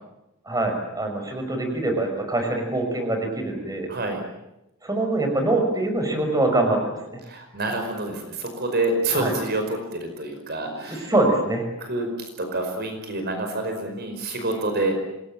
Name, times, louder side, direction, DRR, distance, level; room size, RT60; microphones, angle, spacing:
voice 1, 0.5-3.9 4.8-7.2 9.1-9.3 10.7-11.7, right 2 dB, 15° right, 4 dB, 5.8 m, -24 dB
voice 2, 3.9-4.2 7.3-11.1 11.8-14.9, right 2 dB, 50° right, 5 dB, 5.1 m, -27 dB
27.5 x 21.5 x 9.0 m, 0.90 s
head